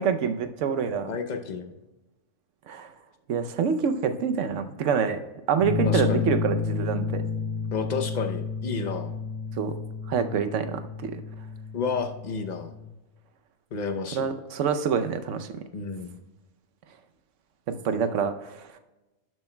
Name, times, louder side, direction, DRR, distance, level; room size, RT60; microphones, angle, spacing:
voice 1, 0.0-1.1 2.7-2.9 3.3-5.2 5.5-7.2 9.6-9.7 10.1-11.2 14.1-15.5 17.8-18.6, right 6 dB, 75° right, 8 dB, 1.0 m, -26 dB
voice 2, 1.1-1.7 5.8-6.3 7.7-9.1 11.7-12.7 13.7-14.3 15.7-16.2, left 5 dB, 45° left, 6 dB, 0.7 m, -31 dB
sound 1, 5.6-12.8, left 5 dB, 55° right, 1.8 m, -31 dB
11.5 x 7.6 x 2.2 m, 1.1 s
omnidirectional pair, 1.3 m